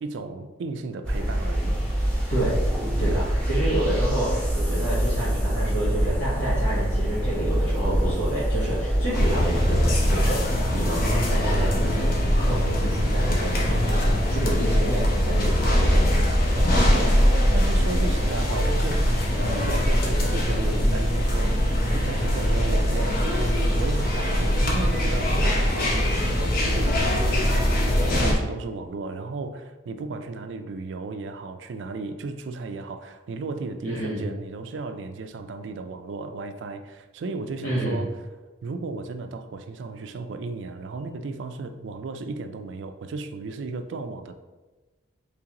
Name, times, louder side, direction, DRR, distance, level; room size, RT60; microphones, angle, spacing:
voice 1, 0.0-1.8 3.0-3.2 16.5-17.2 17.5-38.2 38.6-44.3, right 3 dB, 75° right, 8 dB, 0.4 m, -35 dB
sound 1, 1.0-9.4, equal, 5° left, 0.9 m, -25 dB
voice 2, 3.0-16.1 19.4-19.7 33.8-34.3 37.6-38.0, right 1 dB, 85° left, -10 dB, 1.3 m, -29 dB
sound 2, 9.1-28.3, equal, 50° left, 0.7 m, -22 dB
3.7 x 3.3 x 2.9 m, 1.2 s
head